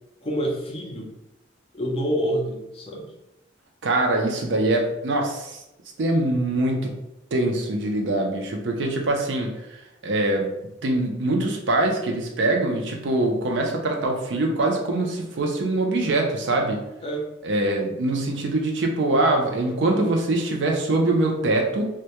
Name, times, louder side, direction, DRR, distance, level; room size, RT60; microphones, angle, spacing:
voice 1, 0.2-1.1 1.7-3.1 17.0-17.3, equal, 30° left, -1 dB, 0.4 m, -27 dB
voice 2, 3.8-5.6 6.0-6.9 7.3-10.5 10.8-16.8 17.4-21.9, right 2 dB, 70° right, 1 dB, 0.5 m, -23 dB
2.2 x 2.1 x 2.8 m, 0.92 s
head